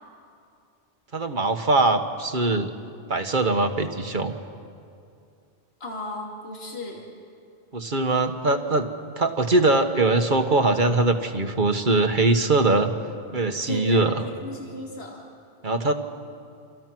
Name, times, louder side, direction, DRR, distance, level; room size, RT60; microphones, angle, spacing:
voice 1, 1.1-2.7 3.1-4.3 7.7-8.9 9.2-12.9 13.3-14.1 15.6-15.9, right 2 dB, 45° right, 6 dB, 1.5 m, -22 dB
voice 2, 5.8-7.0 13.7-15.2, left 2 dB, 60° left, -1 dB, 3.1 m, -35 dB
29.5 x 26.0 x 6.1 m, 2.4 s
omnidirectional pair, 1.2 m